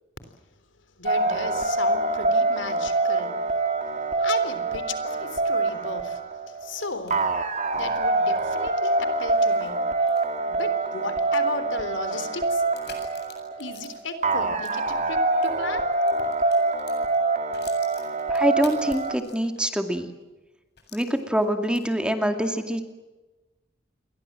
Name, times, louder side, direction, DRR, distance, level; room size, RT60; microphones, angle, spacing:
voice 1, 1.0-3.4 4.2-7.2 7.7-10.2 10.5-12.6 13.6-15.9, left 3 dB, 75° left, 11 dB, 3.6 m, -35 dB
sound 1, 1.1-19.2, right 3 dB, 40° right, 2.5 m, -25 dB
sound 2, 6.3-15.5 15.9-19.8 20.1-20.2 20.8-22.1, left 7 dB, 60° left, 7.8 m, -51 dB
voice 2, 18.3-20.1 20.9-22.8, equal, 5° right, 6 dB, 2.3 m, -25 dB
29.0 x 23.0 x 7.6 m, 1.1 s
head